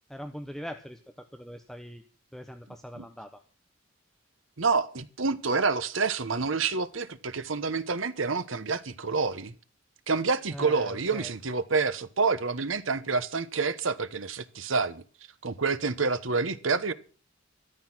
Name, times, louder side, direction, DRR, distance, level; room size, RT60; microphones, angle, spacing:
voice 1, 0.1-2.0 2.3-3.4 10.5-11.3, equal, ahead, 1.0 m, -42 dB
voice 2, 4.6-9.5 10.1-15.0 15.4-16.9, right 4 dB, 85° right, 1.1 m, -28 dB
13.5 x 13.0 x 6.1 m
head